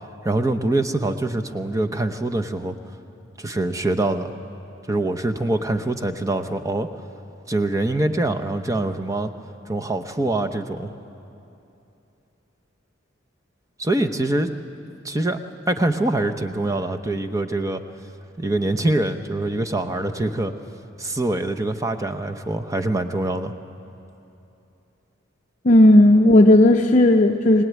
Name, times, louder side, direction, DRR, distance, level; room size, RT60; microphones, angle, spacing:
voice 1, 0.2-2.8 3.4-4.3 4.9-6.9 7.5-9.3 9.7-10.9 13.8-14.5 15.0-15.4 15.7-17.8 18.4-20.5 21.0-23.5, right 2 dB, 15° right, 7 dB, 0.9 m, -24 dB
voice 2, 25.6-27.6, left 1 dB, 40° left, 3 dB, 0.6 m, -13 dB
22.5 x 18.0 x 9.4 m, 2.8 s
head